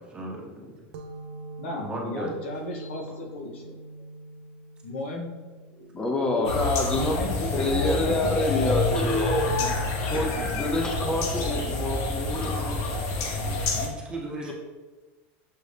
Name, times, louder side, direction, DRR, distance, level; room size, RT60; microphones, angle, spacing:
voice 1, 0.1-0.7 1.8-2.4 13.4-14.5, right 1 dB, 15° right, -1 dB, 0.8 m, -36 dB
sound 1, 0.9-8.2, right 2 dB, 65° right, 0.5 m, -45 dB
voice 2, 1.6-3.8 4.8-9.6, left 2 dB, 90° left, 1 dB, 0.9 m, -35 dB
voice 3, 5.9-9.5 10.0-12.7 14.4-14.5, left 1 dB, 10° left, 1 dB, 0.4 m, -27 dB
sound 2, 6.4-13.9, left 3 dB, 45° left, 0.7 m, -28 dB
6.3 x 2.6 x 3.3 m, 1.3 s
supercardioid pair, 150°, 7 cm